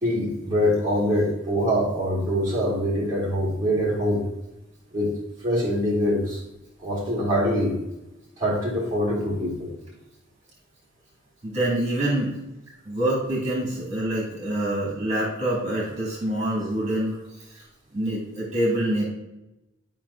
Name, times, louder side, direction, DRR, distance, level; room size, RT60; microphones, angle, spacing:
voice 1, 0.0-4.2 4.9-5.1 5.4-6.4 6.8-7.8 8.4-9.7, equal, 15° right, -8 dB, 3.0 m, -24 dB
voice 2, 11.4-12.3 12.8-17.2 17.9-19.0, right 1 dB, 35° right, -6 dB, 2.9 m, -26 dB
11.5 x 5.6 x 2.9 m, 0.93 s
head